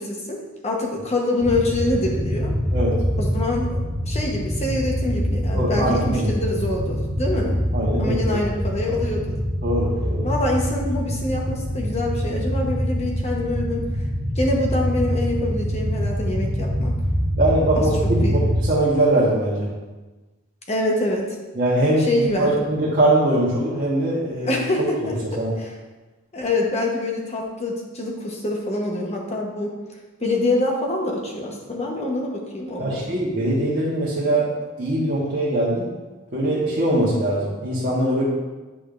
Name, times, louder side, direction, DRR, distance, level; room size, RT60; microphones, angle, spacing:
voice 1, 0.0-2.5 3.2-7.6 8.0-9.4 10.2-13.8 14.4-16.9 17.8-17.9 18.2-18.3 20.7-21.3 22.0-22.5 24.5-25.2 25.6-25.7 26.3-29.7 30.2-33.1, left 2 dB, 30° left, 0 dB, 1.0 m, -25 dB
sound 1, 1.4-18.7, equal, 10° right, 1.7 m, -25 dB
voice 2, 5.5-6.3 7.7-8.4 9.6-10.3 17.4-19.7 21.5-24.6 25.4-25.5 32.8-34.5 34.8-35.9 36.3-38.2, right 1 dB, 45° right, -7 dB, 1.2 m, -22 dB
8.5 x 5.0 x 2.5 m, 1.2 s
head